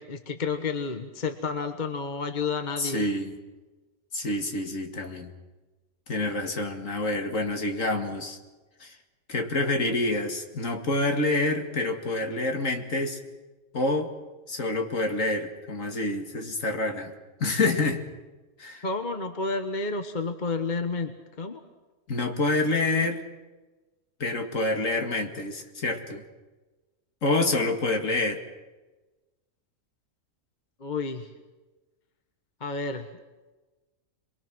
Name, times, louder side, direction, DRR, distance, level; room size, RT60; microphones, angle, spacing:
voice 1, 0.0-3.1 18.8-21.6 30.8-31.3 32.6-33.1, left 4 dB, 35° left, 7 dB, 1.3 m, -30 dB
voice 2, 2.8-3.4 4.1-5.3 6.1-8.4 8.8-9.0 9.3-13.2 13.7-14.1 14.5-17.1 17.4-18.0 18.6-18.8 22.1-23.2 24.2-26.2 27.2-28.4, left 2 dB, 80° left, 4 dB, 2.5 m, -27 dB
27.0 x 22.5 x 6.2 m, 1.2 s
omnidirectional pair, 1.4 m